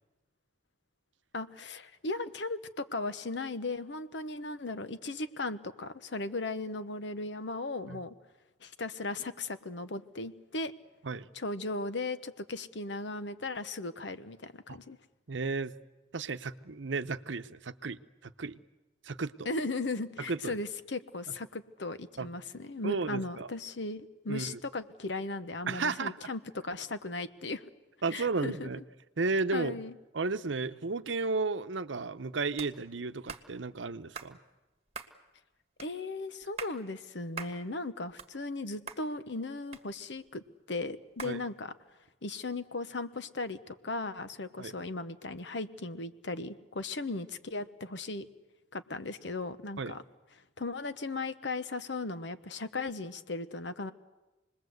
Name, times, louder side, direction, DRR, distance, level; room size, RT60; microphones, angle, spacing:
voice 1, 1.3-8.1 8.6-10.7 11.3-15.0 19.4-27.6 28.1-28.7 29.5-29.9 35.8-40.4 40.7-41.7 42.2-48.2 48.7-50.0 50.6-53.9, left 3 dB, 75° left, 11 dB, 1.1 m, -37 dB
voice 2, 15.3-15.7 16.1-18.6 19.0-19.3 20.3-20.6 22.2-22.3 22.8-23.5 24.3-24.6 25.7-26.3 28.0-28.8 29.2-29.7 30.1-34.4 41.2-41.4 44.6-44.7 49.8-49.9, right 3 dB, 90° right, 12 dB, 0.8 m, -33 dB
sound 1, 32.6-32.7 33.3-33.5 34.1-34.3 34.9-35.1 35.8-35.9 36.4-36.8 37.4-37.6 38.0-38.6 38.9-39.0 39.7-40.3 41.2-41.4, right 5 dB, 35° right, 1.5 m, -42 dB
28.0 x 20.5 x 8.0 m, 1.1 s
head